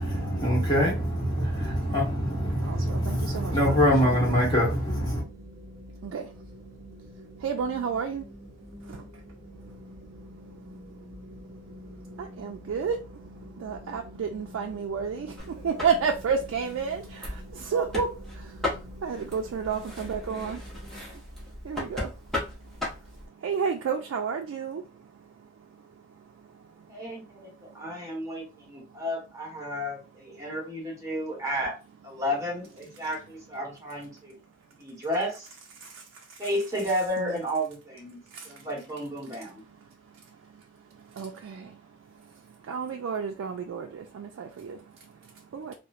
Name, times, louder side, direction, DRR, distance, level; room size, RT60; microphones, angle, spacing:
voice 1, 0.0-5.2, equal, 20° left, 1.1 m, -24 dB
voice 2, 1.6-2.0 2.6-4.2 5.9-6.6 7.0-8.3 8.6-9.0 9.6-29.0 29.6-29.9 30.3-30.6 32.9-33.4 34.1-35.0 35.8-36.5 37.2-37.4 38.1-38.7 39.2-45.7, right 6 dB, 85° right, 0.3 m, -34 dB
sound 1, 4.8-21.0, equal, 35° right, 0.8 m, -47 dB
sound 2, 15.4-23.3, left 2 dB, ahead, 0.9 m, -37 dB
voice 3, 26.9-31.8 32.0-34.4 34.8-35.5 36.4-39.6, equal, 15° right, 1.1 m, -32 dB
2.9 x 2.0 x 2.4 m
head